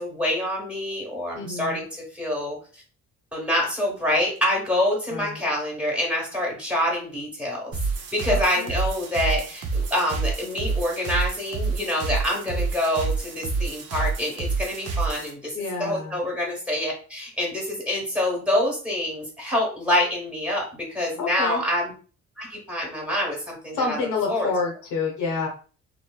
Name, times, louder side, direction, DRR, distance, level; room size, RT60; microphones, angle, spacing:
voice 1, 0.0-1.9 2.1-2.6 3.3-7.7 8.1-15.5 15.8-21.9 22.4-24.0 24.3-24.5, left 1 dB, 5° right, -2 dB, 1.3 m, -26 dB
voice 2, 1.3-1.8 5.1-5.4 8.2-8.7 15.5-16.2 21.2-21.6 23.7-25.5, left 4 dB, 80° left, 0 dB, 1.0 m, -28 dB
sound 1, 7.7-15.3, right 4 dB, 55° right, 0.6 m, -28 dB
3.1 x 2.0 x 2.3 m, 0.38 s
cardioid pair, 90°, 30 cm